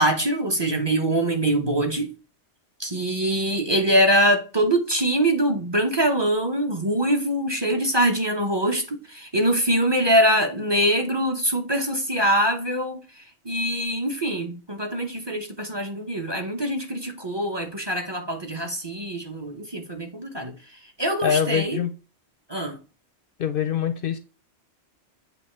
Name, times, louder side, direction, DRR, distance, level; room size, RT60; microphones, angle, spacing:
voice 1, 0.0-2.1 2.8-20.5 21.0-21.8 22.5-22.8, right 1 dB, 25° right, 0.8 m, -23 dB
voice 2, 21.2-21.9 23.4-24.2, left 8 dB, 60° left, 0.7 m, -24 dB
7.8 x 2.8 x 4.3 m
omnidirectional pair, 1.2 m